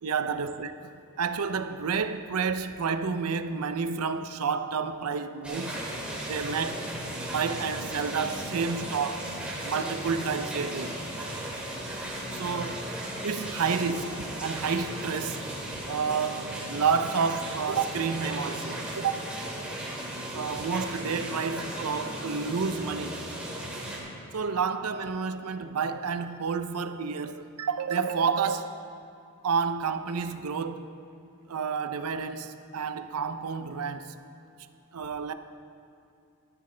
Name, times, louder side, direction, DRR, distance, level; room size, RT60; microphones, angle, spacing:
voice 1, 0.0-5.8 6.2-9.3 9.6-11.0 12.3-12.9 13.2-15.4 15.9-19.3 20.3-23.2 24.3-28.8 29.4-30.9 31.5-34.2 34.9-35.3, right 5 dB, 80° right, 0.6 m, -30 dB
sound 1, 5.4-24.0, right 1 dB, 5° right, 2.2 m, -36 dB
13.5 x 13.0 x 3.3 m
head